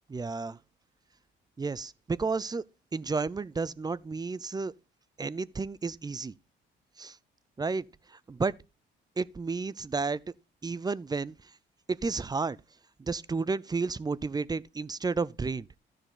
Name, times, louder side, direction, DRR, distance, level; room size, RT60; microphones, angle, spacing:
voice 1, 0.1-0.6 1.6-2.6 2.9-4.7 5.2-6.3 7.0-7.2 7.6-8.5 9.2-10.2 10.6-11.3 11.9-12.6 13.0-15.7, right 4 dB, 20° right, 0.5 m, -32 dB
13.0 x 6.5 x 4.0 m
cardioid pair, 90°, 20 cm